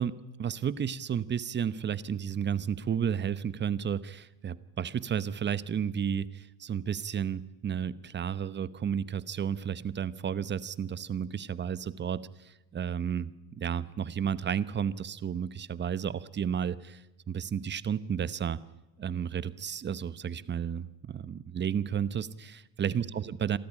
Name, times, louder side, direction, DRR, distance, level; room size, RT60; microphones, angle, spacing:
voice 1, 0.0-18.6 19.0-23.6, right 8 dB, 35° right, 17 dB, 1.0 m, -32 dB
26.5 x 14.0 x 10.0 m, 0.99 s
cardioid pair, 105°, 33 cm